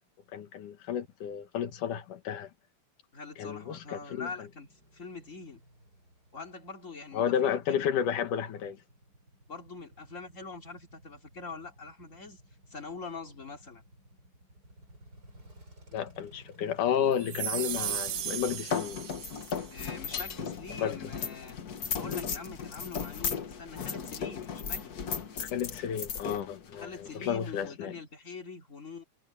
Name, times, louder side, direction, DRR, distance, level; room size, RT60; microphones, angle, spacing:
voice 1, 0.3-2.5 3.4-4.3 7.1-8.8 15.9-19.0 20.8-21.0 25.4-28.0, left 8 dB, 75° left, 3.1 m, -32 dB
voice 2, 3.1-4.7 4.9-5.6 6.3-7.8 9.5-12.4 12.7-13.8 19.7-21.6 21.9-25.1 26.8-29.0, left 4 dB, 25° left, 2.9 m, -44 dB
Male speech man speaking / Motorcycle / Idling, 3.3-19.3, right 1 dB, 25° right, 8.2 m, -57 dB
sound 1, 17.2-19.7, right 11 dB, 70° right, 1.4 m, -36 dB
sound 2, 17.7-27.7, left 6 dB, 55° left, 1.0 m, -37 dB
omnidirectional pair, 3.7 m